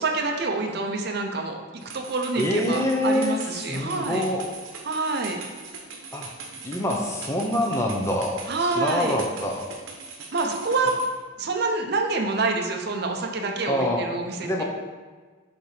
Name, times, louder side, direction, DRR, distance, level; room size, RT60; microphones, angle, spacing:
voice 1, 0.0-4.2 4.9-5.4 8.5-9.2 10.3-11.0 11.4-14.6, right 3 dB, 55° right, 2 dB, 0.7 m, -27 dB
sound 1, 1.8-11.1, right 4 dB, 80° right, 1.0 m, -41 dB
voice 2, 2.4-4.4 6.1-6.3 6.6-9.7 13.7-14.0 14.4-14.6, left 1 dB, 15° left, 0 dB, 0.5 m, -26 dB
6.8 x 2.9 x 5.0 m, 1.4 s
head